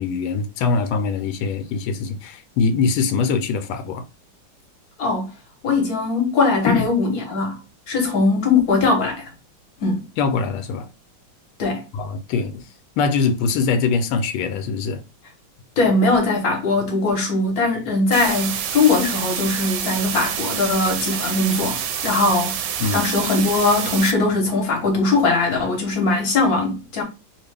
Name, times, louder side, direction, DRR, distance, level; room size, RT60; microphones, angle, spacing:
voice 1, 0.0-4.0 6.7-6.9 10.2-10.9 11.9-12.6 13.0-15.0 22.8-23.1, left 5 dB, 85° left, 1.4 m, -22 dB
voice 2, 5.0-5.3 5.6-7.6 7.9-9.3 9.8-10.0 11.6-11.8 15.8-22.6 22.9-27.0, left 3 dB, 55° left, 1.4 m, -20 dB
sound 1, 18.1-24.1, right 8 dB, 75° right, 1.0 m, -27 dB
3.6 x 2.4 x 3.3 m
omnidirectional pair, 2.2 m